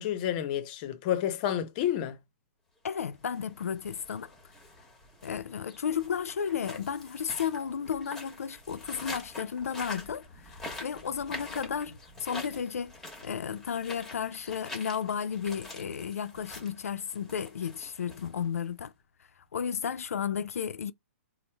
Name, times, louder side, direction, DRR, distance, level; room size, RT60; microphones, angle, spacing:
voice 1, 0.0-2.2, left 10 dB, 35° left, 0.7 m, -30 dB
voice 2, 2.8-4.3 5.2-18.9 19.5-20.9, left 7 dB, 80° left, 0.4 m, -33 dB
sound 1, 3.1-18.8, left 2 dB, 5° left, 1.2 m, -46 dB
4.3 x 2.0 x 3.4 m
hypercardioid pair, 140°, 8 cm